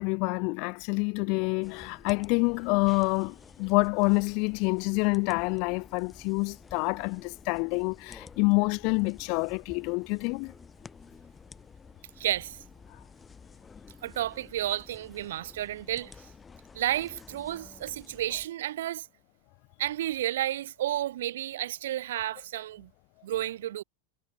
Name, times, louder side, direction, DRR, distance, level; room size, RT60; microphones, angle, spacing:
voice 1, 0.0-10.5, left 33 dB, 45° left, 0.6 m, -27 dB
sound 1, 1.6-18.5, left 5 dB, 15° left, 4.6 m, -51 dB
voice 2, 12.2-12.6 14.0-16.1 16.7-19.1 19.8-22.9 23.2-23.8, right 13 dB, 60° right, 0.6 m, -31 dB
figure-of-eight pair, 90°, 0 cm